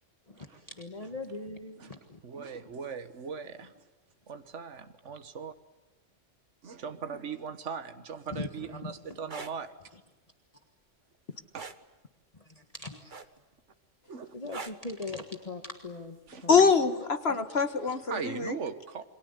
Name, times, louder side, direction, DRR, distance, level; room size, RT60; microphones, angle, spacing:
voice 1, 0.3-2.2 8.3-8.9 12.4-13.1 14.3-16.7 17.3-17.6, left 3 dB, 30° left, 6 dB, 1.7 m, -41 dB
voice 2, 1.8-3.7 4.3-5.5 6.6-9.7 11.5-11.6 14.1-14.3 16.3-16.5 18.1-19.0, right 6 dB, 70° right, 9 dB, 1.7 m, -39 dB
sound 1, 9.2-9.5 11.5-11.8 13.1-13.5 14.5-14.9 16.3-16.4, right 4 dB, 40° right, 1.5 m, -41 dB
voice 3, 16.5-18.6, left 5 dB, 55° left, 10 dB, 1.7 m, -24 dB
28.5 x 23.5 x 8.2 m, 1.2 s
omnidirectional pair, 1.3 m